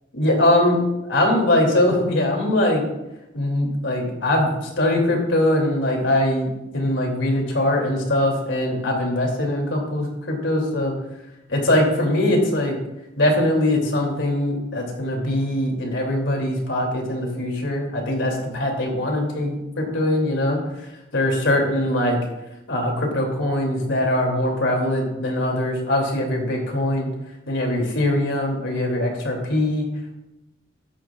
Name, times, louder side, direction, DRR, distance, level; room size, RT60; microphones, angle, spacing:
voice 1, 0.1-0.8 1.1-2.8 3.3-10.9 11.5-12.8 13.2-20.6 21.1-22.2 22.7-27.1 27.5-29.8, left 1 dB, 80° left, 1 dB, 2.8 m, -22 dB
14.0 x 11.0 x 2.4 m, 0.93 s
head